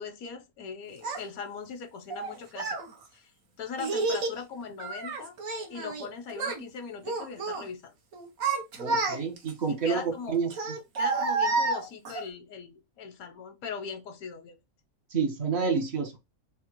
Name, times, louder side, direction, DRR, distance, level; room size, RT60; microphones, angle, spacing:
voice 1, 0.0-2.8 3.1-3.3 3.6-5.3 5.7-7.9 9.7-10.3 11.0-14.5, left 6 dB, 90° left, 1.2 m, -40 dB
Child speech kid speaking, 1.0-1.2 2.1-2.8 3.8-4.4 4.8-6.1 6.3-6.6 7.0-7.6 8.1-9.5 10.5-12.2, right 3 dB, 75° right, 1.4 m, -30 dB
voice 2, 8.8-10.5 15.1-16.2, right 5 dB, 55° right, 1.1 m, -29 dB
3.6 x 2.2 x 4.4 m
omnidirectional pair, 1.5 m